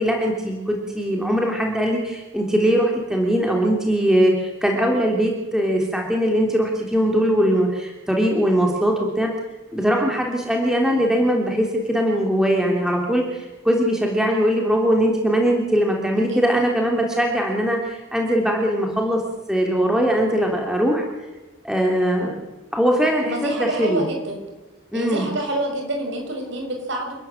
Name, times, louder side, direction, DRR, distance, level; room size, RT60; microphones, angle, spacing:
voice 1, 0.0-9.3 9.7-19.2 19.5-21.0 21.6-22.3 22.7-24.0 24.9-25.3, equal, 5° right, 0 dB, 3.2 m, -21 dB
voice 2, 16.2-16.7 23.2-24.4 24.9-27.1, right 1 dB, 60° right, 2 dB, 6.3 m, -27 dB
28.5 x 13.5 x 8.9 m, 1.1 s
head